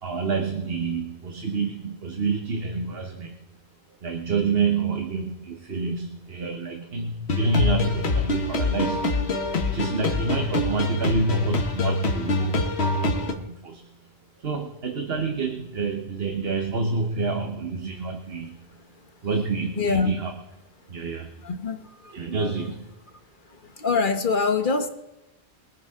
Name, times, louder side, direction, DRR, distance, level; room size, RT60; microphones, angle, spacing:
voice 1, 0.0-3.4 4.0-9.2 9.6-13.9 14.4-18.6 19.2-20.3 20.9-21.3 22.1-23.0, right 3 dB, 60° right, 4 dB, 1.4 m, -28 dB
sound 1, 7.3-13.3, left 2 dB, 70° left, 1.7 m, -25 dB
voice 2, 19.8-20.1 21.4-22.1 23.6-24.9, left 4 dB, 50° left, 7 dB, 1.3 m, -24 dB
24.0 x 9.6 x 3.7 m, 0.96 s
omnidirectional pair, 1.1 m